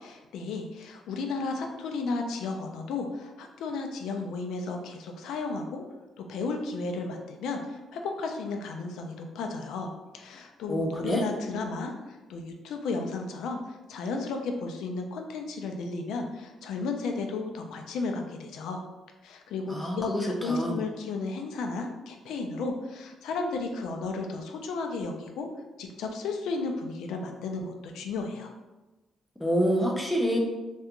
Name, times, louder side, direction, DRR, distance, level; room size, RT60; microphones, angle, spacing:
voice 1, 0.0-5.8 6.2-18.8 19.2-25.5 25.8-28.5, left 3 dB, 85° left, 4 dB, 0.3 m, -34 dB
voice 2, 10.7-11.2 19.7-20.8 29.4-30.4, equal, 5° left, -1 dB, 0.4 m, -27 dB
2.4 x 2.2 x 2.8 m, 1.1 s
cardioid pair, 150°, 0 cm